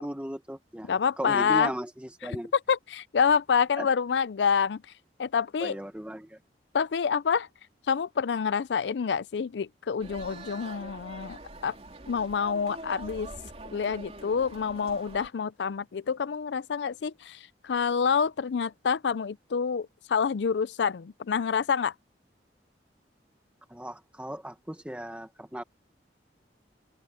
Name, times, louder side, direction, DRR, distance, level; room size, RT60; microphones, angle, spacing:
voice 1, 0.0-2.5 3.8-3.9 5.6-6.4 23.7-25.6, right 1 dB, 5° right, 1.1 m, -36 dB
voice 2, 0.8-1.7 2.7-4.8 5.2-5.8 6.7-7.5 7.9-11.4 11.6-11.7 12.1-13.3 13.7-21.9, left 6 dB, 80° left, 0.4 m, -27 dB
sound 1, 10.0-15.3, right 2 dB, 35° right, 3.6 m, -44 dB
head